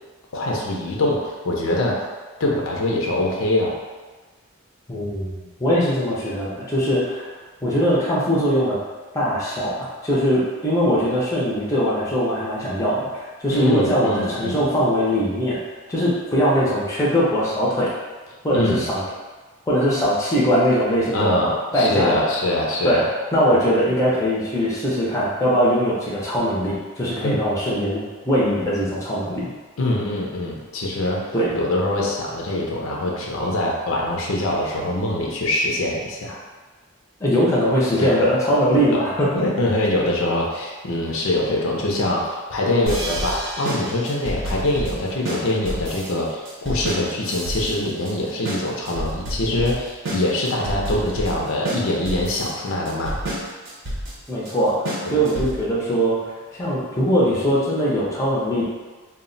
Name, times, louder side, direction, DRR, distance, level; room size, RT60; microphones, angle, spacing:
voice 1, 0.3-2.0 2.4-3.8 13.5-14.7 18.5-18.8 21.1-23.1 27.2-27.4 29.8-31.2 31.5-36.4 38.0-38.3 38.7-39.0 39.4-53.2 55.1-55.3, left 1 dB, 65° left, -2 dB, 0.5 m, -24 dB
voice 2, 4.9-5.3 5.6-7.3 7.6-8.8 9.1-15.6 15.9-17.9 18.4-19.0 19.7-21.4 21.7-22.2 22.8-23.0 23.3-29.5 31.3-31.5 37.2-39.4 54.3-58.6, equal, 15° left, -7 dB, 0.5 m, -21 dB
sound 1, 42.9-55.7, right 1 dB, 65° right, 0.7 m, -29 dB
2.2 x 2.1 x 3.8 m, 1.3 s
head